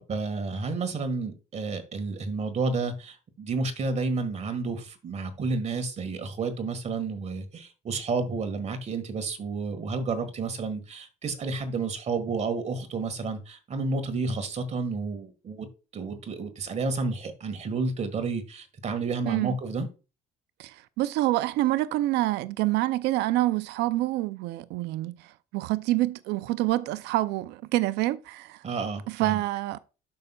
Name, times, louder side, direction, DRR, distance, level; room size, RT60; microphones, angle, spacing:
voice 1, 0.0-15.7 15.9-19.9 28.6-29.4, right 4 dB, 40° right, 1.6 m, -31 dB
voice 2, 19.3-19.6 20.6-28.6 29.1-29.8, right 17 dB, 85° right, 0.4 m, -27 dB
12.0 x 5.5 x 2.3 m
cardioid pair, 110°, 17 cm